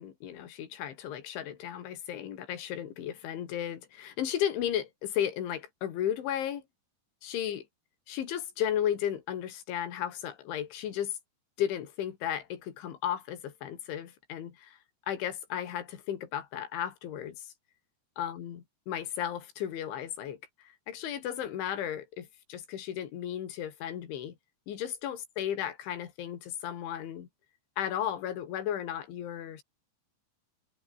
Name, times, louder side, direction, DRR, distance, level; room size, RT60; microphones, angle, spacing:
voice 1, 0.0-6.6 7.2-7.6 8.1-11.1 11.6-14.8 15.1-17.5 18.2-20.4 20.9-24.4 24.7-27.3 27.8-29.6, left 10 dB, 90° left, 5.0 m, -34 dB
omnidirectional pair, 5.3 m